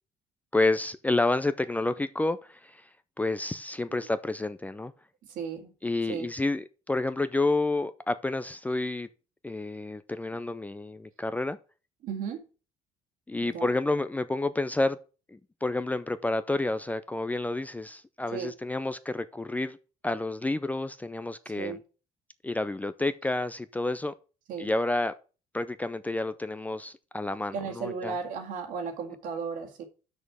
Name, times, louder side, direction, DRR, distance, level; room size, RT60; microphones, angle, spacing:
voice 1, 0.5-2.8 3.2-4.9 5.8-9.1 9.4-11.6 13.3-15.0 15.3-19.8 20.0-21.8 22.4-24.1 24.6-25.1 25.5-28.1, left 2 dB, 10° left, 0.4 m, -29 dB
voice 2, 5.2-5.7 6.1-6.3 12.0-12.5 13.4-13.7 18.3-18.5 21.6-21.8 24.5-24.7 27.5-29.8, right 6 dB, 75° right, 2.0 m, -35 dB
6.3 x 5.2 x 6.2 m
cardioid pair, 125°, 14 cm